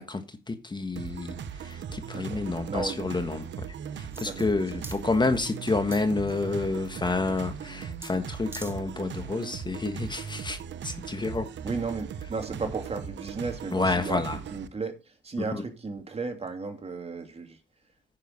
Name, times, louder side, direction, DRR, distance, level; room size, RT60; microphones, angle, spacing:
voice 1, 0.0-11.5 13.7-14.4 15.5-15.6, left 3 dB, 20° left, 1.5 m, -29 dB
sound 1, 1.0-14.7, right 7 dB, 65° right, 1.0 m, -39 dB
voice 2, 2.7-3.0 4.2-4.5 11.6-14.2 14.5-17.6, right 4 dB, 30° right, 2.7 m, -34 dB
sound 2, 4.1-4.5 4.8-5.0 5.9-6.5 8.0-8.1 8.4-8.8 9.2-9.3, right 2 dB, 10° right, 1.9 m, -42 dB
9.8 x 6.7 x 6.6 m
cardioid pair, 90°, 20 cm